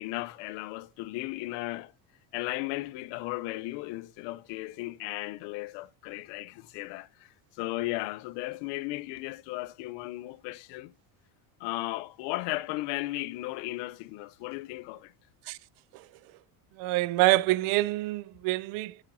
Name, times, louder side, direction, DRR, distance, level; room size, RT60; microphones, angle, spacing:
voice 1, 0.0-1.9 2.3-10.9 11.6-15.1, left 19 dB, 70° left, 0.7 m, -35 dB
voice 2, 16.8-19.0, right 18 dB, 75° right, 0.7 m, -26 dB
11.0 x 7.3 x 2.7 m
cardioid pair, 150°, 45 cm